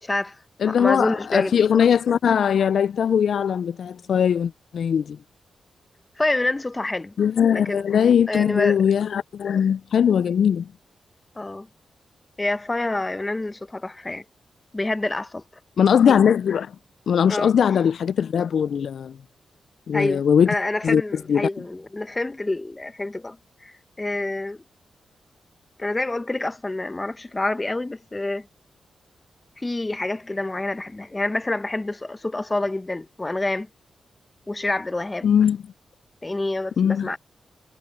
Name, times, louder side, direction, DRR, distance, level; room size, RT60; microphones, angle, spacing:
voice 1, 0.0-1.6 6.2-7.1 7.5-8.8 11.4-11.7 12.4-14.2 14.7-15.4 17.3-17.5 19.9-24.6 25.8-28.5 29.6-33.7 34.5-35.3 36.2-37.2, left 2 dB, 20° left, 1.1 m, -27 dB
voice 2, 0.6-5.2 7.2-10.7 15.8-16.7 17.1-19.1 19.9-20.5 20.8-21.0 21.3-21.5 35.2-35.6 36.8-37.1, left 8 dB, 75° left, 0.3 m, -20 dB
cardioid pair, 90°, 0 cm